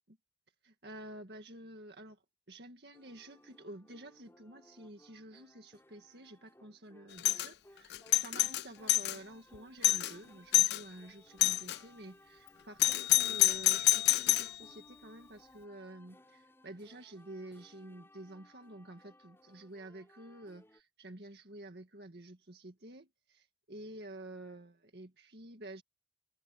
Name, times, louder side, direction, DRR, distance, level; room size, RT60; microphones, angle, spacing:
voice 1, 0.6-2.2 2.5-25.8, right 1 dB, 65° right, 1.9 m, -50 dB
sound 1, 2.9-20.8, left 1 dB, 15° left, 5.3 m, -62 dB
Doorbell, 7.2-7.5 7.9-9.2 9.5-9.6 9.8-10.1 10.5-10.8 11.4-11.8 12.8-14.5, left 16 dB, 65° left, 0.4 m, -27 dB
head